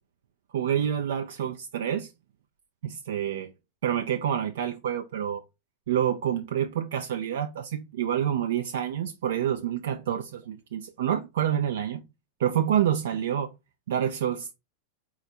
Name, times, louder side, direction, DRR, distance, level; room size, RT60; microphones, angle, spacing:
voice 1, 0.5-2.1 2.8-3.5 3.8-5.4 5.9-12.0 12.4-13.5 13.9-14.5, right 10 dB, 60° right, 0.4 m, -28 dB
4.1 x 2.4 x 4.1 m
figure-of-eight pair, 90°, 0 cm